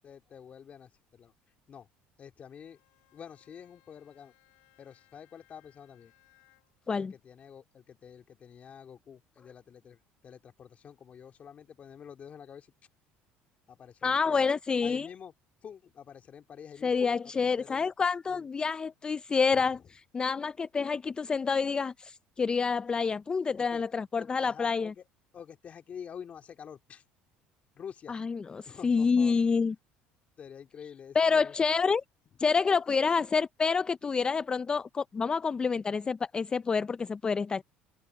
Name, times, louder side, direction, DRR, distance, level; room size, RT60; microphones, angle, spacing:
voice 1, 0.0-1.3 1.7-1.9 2.2-2.8 3.1-4.3 4.8-6.1 6.9-12.7 13.7-14.5 14.8-15.3 15.6-17.9 18.3-18.5 19.5-19.9 23.5-23.8 24.1-25.0 25.3-27.0 27.7-28.2 28.6-29.4 30.4-31.5, left 8 dB, 40° left, 2.8 m, -48 dB
Bowed string instrument, 2.5-6.9, left 24 dB, 80° left, 6.3 m, -67 dB
voice 2, 14.0-15.1 16.8-19.8 20.1-24.9 28.1-29.7 31.2-32.0 32.4-37.6, left 5 dB, 25° left, 0.4 m, -28 dB
open air
supercardioid pair, 95°, 4 cm